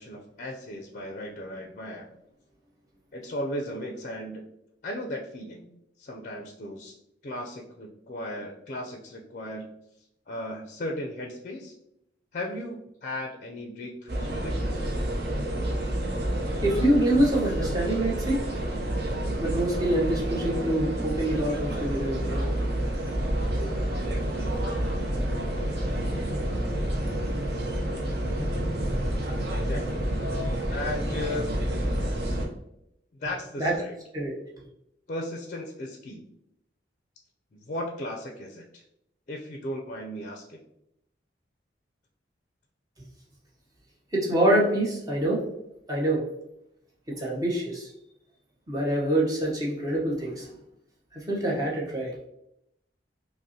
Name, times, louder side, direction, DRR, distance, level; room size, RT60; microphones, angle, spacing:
voice 1, 0.0-2.1 3.1-4.4 4.8-5.7 6.0-6.9 7.2-9.7 10.3-11.7 12.3-14.6 29.5-30.0 30.7-31.5 33.2-33.9 35.1-36.2 37.5-38.8 39.3-40.6, left 1 dB, 45° left, 1 dB, 0.4 m, -36 dB
sound 1, 14.1-32.5, right 1 dB, 60° right, 0.7 m, -29 dB
voice 2, 16.6-18.4 19.4-22.4 23.0-23.1 23.6-23.7 33.6-33.8 34.1-34.3 44.1-45.5 45.9-46.2 47.1-47.9 48.7-50.5 51.1-52.2, right 1 dB, 20° right, -4 dB, 0.7 m, -25 dB
5.2 x 2.1 x 2.7 m, 0.81 s
head